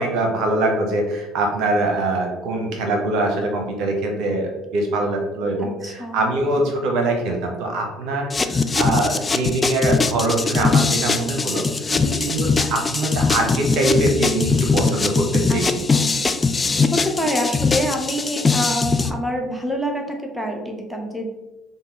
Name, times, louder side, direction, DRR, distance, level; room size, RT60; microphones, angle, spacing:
voice 1, 0.0-11.6 12.3-15.7, right 2 dB, 60° right, 2 dB, 0.7 m, -23 dB
voice 2, 5.6-6.2 11.9-12.2 15.5-15.6 15.9-16.2 16.5-21.3, equal, ahead, 1 dB, 0.8 m, -27 dB
sound 1, 8.3-19.1, left 4 dB, 25° left, 0.3 m, -21 dB
5.1 x 2.2 x 3.0 m, 1.0 s
figure-of-eight pair, 60°, 0 cm